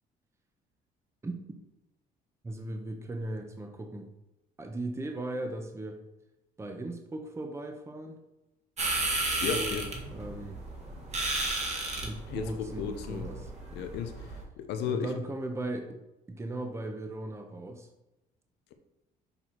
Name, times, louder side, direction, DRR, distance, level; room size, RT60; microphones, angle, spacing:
voice 1, 2.4-4.1 4.6-6.0 6.6-8.2 9.4-9.8 10.1-10.6 12.0-13.5 14.9-16.0 16.3-17.9, right 2 dB, 15° right, 4 dB, 0.8 m, -37 dB
sound 1, 8.8-14.4, right 2 dB, 40° right, 1.7 m, -33 dB
voice 2, 9.4-9.8 12.3-13.3 13.7-14.2 14.6-15.2, left 7 dB, 85° left, 7 dB, 0.9 m, -34 dB
7.0 x 4.3 x 4.4 m, 0.95 s
cardioid pair, 110°, 17 cm